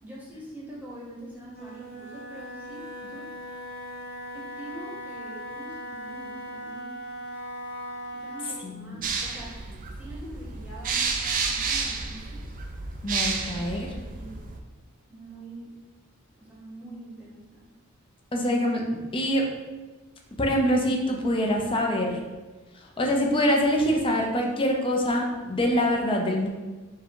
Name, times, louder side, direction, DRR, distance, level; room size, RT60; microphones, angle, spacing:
voice 1, 0.0-3.3 4.3-7.0 8.1-9.6 10.0-12.5 13.5-14.4 15.1-15.7 16.4-17.7, right 1 dB, 10° right, -5 dB, 1.0 m, -44 dB
Wind instrument woodwind instrument, 1.5-8.7, equal, 45° left, 0.9 m, -39 dB
voice 2, 8.6-9.0 13.0-13.9 18.3-19.5 20.4-22.2 22.7-26.5, equal, 25° left, 0 dB, 0.6 m, -25 dB
sound 1, 9.0-14.6, right 4 dB, 40° right, 0.4 m, -31 dB
4.7 x 2.3 x 4.6 m, 1.3 s
head